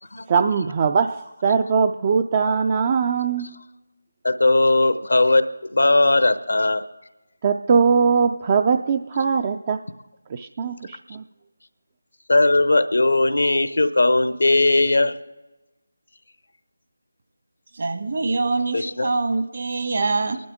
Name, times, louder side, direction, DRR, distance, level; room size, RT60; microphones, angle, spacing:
voice 1, 0.3-3.6 7.4-9.8 10.3-11.2, right 6 dB, 30° right, 8 dB, 0.4 m, -21 dB
voice 2, 4.2-6.8 12.3-15.2 18.7-19.1, left 2 dB, 70° left, 12 dB, 0.8 m, -18 dB
voice 3, 17.8-20.4, right 3 dB, 55° right, 6 dB, 1.4 m, -24 dB
27.0 x 11.5 x 3.7 m, 1.1 s
figure-of-eight pair, 160°, 0 cm